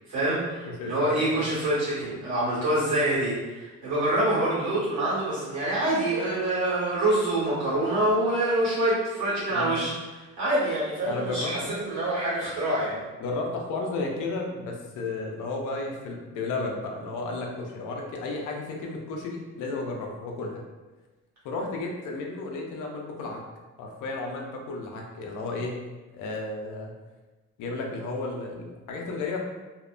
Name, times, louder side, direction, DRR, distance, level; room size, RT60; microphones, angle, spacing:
voice 1, 0.1-13.0, right 1 dB, 65° right, -8 dB, 1.5 m, -26 dB
voice 2, 0.7-1.5 9.5-9.8 11.1-11.7 13.2-20.6 21.4-23.4 23.8-25.8 26.1-26.9 27.6-29.4, left 3 dB, 85° left, 0 dB, 0.5 m, -33 dB
2.8 x 2.1 x 2.4 m, 1.2 s
cardioid pair, 90°, 30 cm